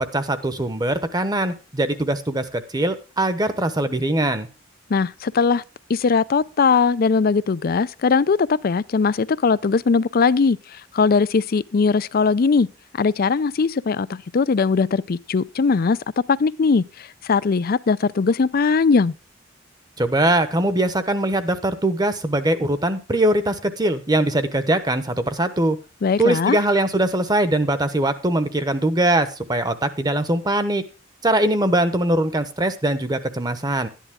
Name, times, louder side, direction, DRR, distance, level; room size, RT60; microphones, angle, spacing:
voice 1, 0.1-4.5 20.0-25.8 26.2-30.8 31.2-33.9, right 1 dB, 20° right, 1.0 m, -21 dB
voice 2, 4.9-5.6 5.9-12.7 13.0-16.0 16.3-19.1 26.0-26.6, left 5 dB, 50° left, 0.4 m, -20 dB
12.0 x 10.0 x 3.6 m
head